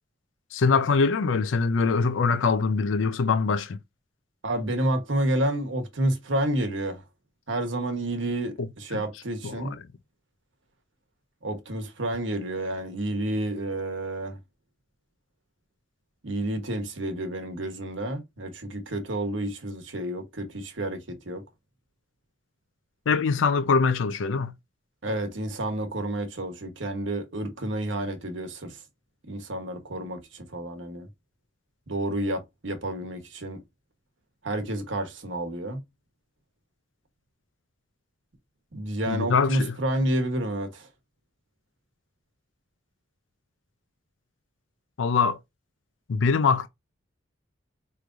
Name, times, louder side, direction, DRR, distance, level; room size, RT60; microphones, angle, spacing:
voice 1, 0.5-3.8 9.4-9.7 23.1-24.5 39.1-39.7 45.0-45.4 46.1-46.7, left 5 dB, 90° left, 0.4 m, -23 dB
voice 2, 4.4-7.0 7.5-9.8 11.4-14.4 16.2-21.4 25.0-28.8 29.3-31.1 31.9-33.6 34.4-35.8 38.7-40.9, right 1 dB, 80° right, 1.1 m, -30 dB
4.8 x 3.1 x 2.5 m
head